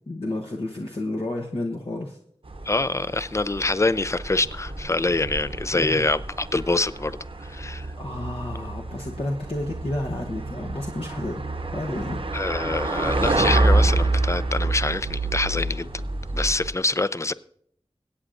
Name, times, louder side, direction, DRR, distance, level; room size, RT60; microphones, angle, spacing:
voice 1, 0.1-2.2 5.7-6.0 8.0-11.4 11.7-12.2, left 1 dB, 60° left, 1.0 m, -31 dB
sound 1, 2.5-16.7, right 2 dB, 60° right, 0.8 m, -27 dB
voice 2, 2.6-7.9 12.3-15.9 16.3-17.3, left 2 dB, 25° left, 0.4 m, -25 dB
25.0 x 8.5 x 2.6 m
wide cardioid pair, 55°, 11 cm